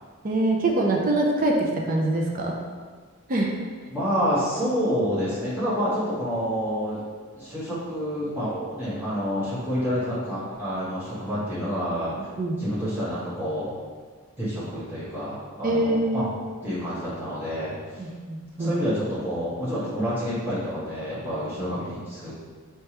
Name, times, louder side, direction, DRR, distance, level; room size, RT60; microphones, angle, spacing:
voice 1, 0.2-1.5 1.9-2.5 3.3-3.5 12.4-12.6 15.6-16.3 18.0-18.7, right 2 dB, 40° right, 0 dB, 0.5 m, -24 dB
voice 2, 3.9-7.0 7.4-12.1 12.6-13.7 14.4-16.3 16.6-18.1 18.6-22.4, equal, 10° right, -11 dB, 1.2 m, -28 dB
4.5 x 3.3 x 2.9 m, 1.5 s
head